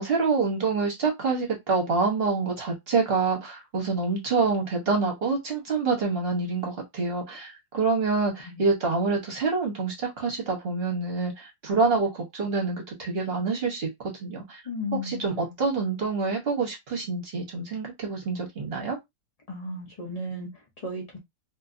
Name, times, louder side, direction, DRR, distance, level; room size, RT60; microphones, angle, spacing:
voice 1, 0.0-13.9 14.2-14.6 15.0-19.0, right 4 dB, 45° right, 0.9 m, -26 dB
voice 2, 14.7-15.6 19.5-21.2, left 2 dB, 90° left, 0.3 m, -35 dB
2.6 x 2.5 x 2.5 m
omnidirectional pair, 1.8 m